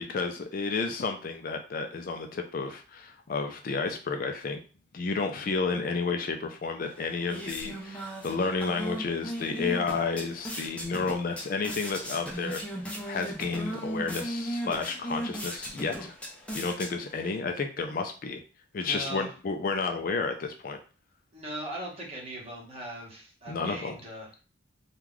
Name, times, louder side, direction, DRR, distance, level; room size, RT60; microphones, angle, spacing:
voice 1, 0.0-4.6 4.9-12.6 13.1-16.1 16.5-18.4 18.7-20.8 23.5-24.0, left 4 dB, 45° left, 5 dB, 0.4 m, -31 dB
sound 1, 6.8-17.4, equal, 5° left, 0.6 m, -37 dB
voice 2, 18.8-19.3 21.3-24.3, right 1 dB, 30° right, -3 dB, 1.2 m, -39 dB
3.0 x 2.4 x 3.7 m, 0.36 s
head